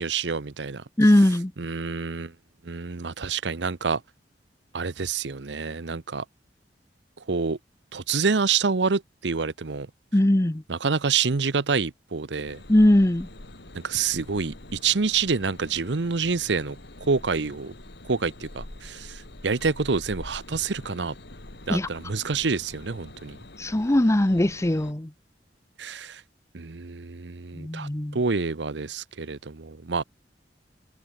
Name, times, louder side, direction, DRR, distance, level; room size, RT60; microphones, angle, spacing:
voice 1, 0.0-0.8 1.6-2.3 2.6-4.0 4.7-6.2 7.3-7.6 7.9-9.9 10.7-12.6 13.8-17.7 18.0-21.1 21.7-23.4 25.8-26.2 26.5-30.0, right 5 dB, 80° right, 0.9 m, -27 dB
voice 2, 1.0-1.5 10.1-10.6 12.7-13.3 21.7-21.9 23.6-25.1 27.5-28.2, left 1 dB, 15° left, 0.7 m, -20 dB
sound 1, 12.5-24.9, left 1 dB, 65° left, 2.7 m, -45 dB
head